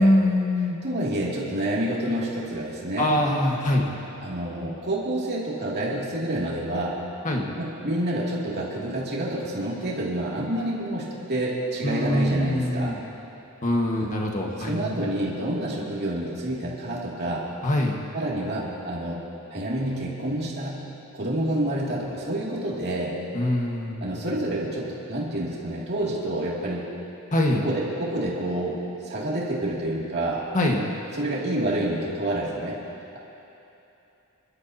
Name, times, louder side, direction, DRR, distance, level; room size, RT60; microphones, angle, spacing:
voice 1, 0.0-0.8 3.0-3.9 7.2-7.5 11.8-13.0 13.6-14.9 17.6-18.0 23.3-24.2 27.3-27.6 30.5-30.8, left 1 dB, 35° left, 0 dB, 1.6 m, -23 dB
voice 2, 0.8-3.1 4.2-7.0 7.6-13.0 14.0-14.1 14.6-17.5 18.1-19.2 19.5-20.9 21.1-23.2 24.0-26.9 27.6-28.8 29.0-30.4 31.1-32.8, right 1 dB, 50° right, -5 dB, 2.7 m, -28 dB
27.0 x 12.5 x 2.9 m, 2.9 s
head